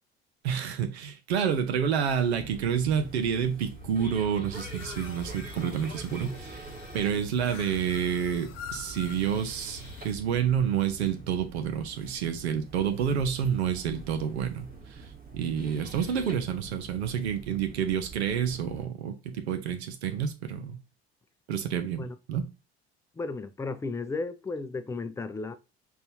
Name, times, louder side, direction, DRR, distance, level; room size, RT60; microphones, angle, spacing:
voice 1, 0.4-6.7 6.9-15.1 15.3-20.8 21.5-22.5, right 8 dB, 80° right, 0.7 m, -29 dB
sound 1, 2.3-18.9, right 3 dB, 25° right, 1.1 m, -45 dB
sound 2, 4.5-10.1, left 7 dB, 55° left, 0.8 m, -45 dB
voice 2, 23.2-25.5, left 3 dB, 10° left, 0.4 m, -34 dB
5.4 x 2.4 x 2.7 m
figure-of-eight pair, 60°, 33 cm